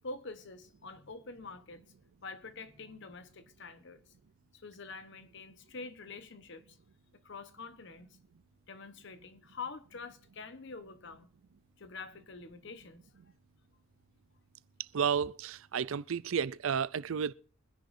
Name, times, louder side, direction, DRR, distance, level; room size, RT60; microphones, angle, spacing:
voice 1, 0.0-1.9 2.2-4.1 4.5-6.8 7.2-8.2 8.7-11.3 11.8-13.3, left 4 dB, 55° left, 1.0 m, -46 dB
voice 2, 14.9-17.3, right 7 dB, 75° right, 0.5 m, -32 dB
24.0 x 10.5 x 2.6 m
head